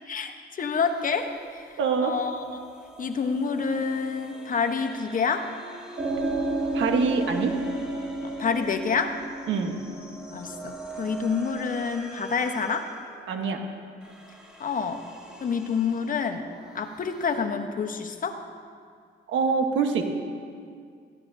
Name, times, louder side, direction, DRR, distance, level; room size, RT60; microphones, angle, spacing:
voice 1, 0.1-2.6 3.0-5.5 8.2-9.2 10.3-12.9 14.6-15.0 15.4-16.5 16.7-18.4, left 5 dB, 45° left, 6 dB, 1.0 m, -28 dB
sound 1, 0.8-17.3, right 2 dB, 5° right, 3.6 m, -45 dB
voice 2, 1.8-2.1 6.7-7.6 9.5-9.8 13.3-13.6 19.3-20.0, right 5 dB, 75° right, 4 dB, 1.3 m, -25 dB
sound 2, 6.0-11.2, right 2 dB, 45° right, 3.3 m, -31 dB
17.5 x 14.5 x 2.7 m, 2.2 s
cardioid pair, 90°, 20 cm